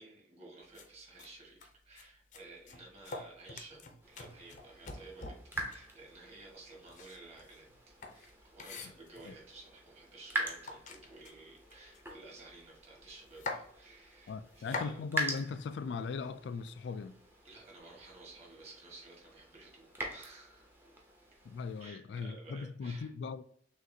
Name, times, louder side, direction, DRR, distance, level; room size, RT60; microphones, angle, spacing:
voice 1, 0.0-7.7 8.1-15.0 17.4-20.7 21.8-23.1, right 2 dB, 35° right, 1.7 m, -54 dB
sound 1, 0.7-0.9 1.2-1.3 1.6-2.0 2.3-5.9 6.8-9.4 10.1-10.2 10.4-12.5 12.8-12.9 13.1-13.6 14.3-14.9, left 3 dB, 45° left, 0.6 m, -44 dB
sound 2, 4.0-21.9, right 1 dB, 10° right, 0.7 m, -44 dB
voice 2, 14.3-17.2 21.4-23.4, left 5 dB, 75° left, 0.3 m, -39 dB
6.3 x 2.5 x 2.7 m
head